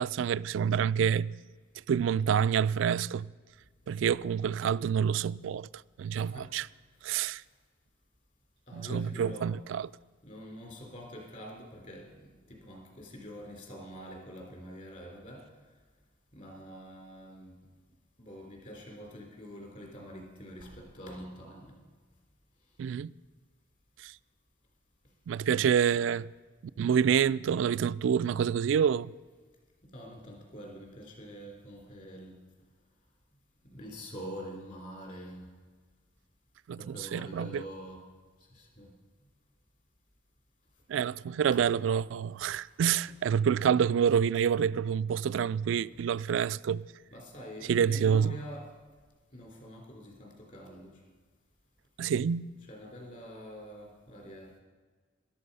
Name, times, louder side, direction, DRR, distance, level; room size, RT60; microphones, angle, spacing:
voice 1, 0.0-1.3 1.9-3.3 3.9-5.7 6.0-6.7 7.0-7.4 8.8-9.9 22.8-23.1 24.0-24.1 25.3-26.3 26.8-29.1 36.7-37.6 40.9-46.9 47.7-48.4 52.0-52.5, right 8 dB, 75° right, 0.3 m, -27 dB
voice 2, 6.2-6.5 8.7-9.5 10.2-15.4 16.3-17.6 18.2-21.8 29.8-32.4 33.7-35.5 36.7-38.0 38.5-38.9 41.5-41.6 42.6-42.8 43.1-43.2 45.9-46.0 47.1-48.7 49.3-51.0 52.6-54.6, equal, 40° left, 3.6 m, -45 dB
13.0 x 12.0 x 5.5 m
head